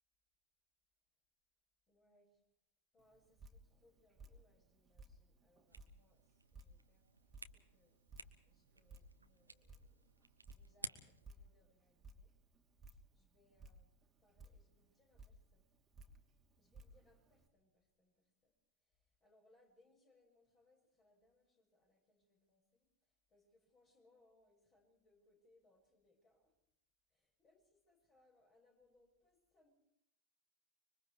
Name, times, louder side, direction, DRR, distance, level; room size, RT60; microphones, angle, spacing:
voice 1, 1.9-2.4 2.9-8.0 8.4-10.1 10.5-12.4 13.1-13.9 14.2-15.7 16.6-18.5 18.8-26.6 27.1-29.7, left 2 dB, 25° left, 2 dB, 6.4 m, -74 dB
Drip, 3.0-17.5, right 2 dB, 20° right, 2.7 m, -61 dB
sound 1, 5.7-11.4, right 2 dB, 80° right, 1.3 m, -55 dB
26.0 x 24.0 x 4.7 m, 0.78 s
figure-of-eight pair, 90°, 0 cm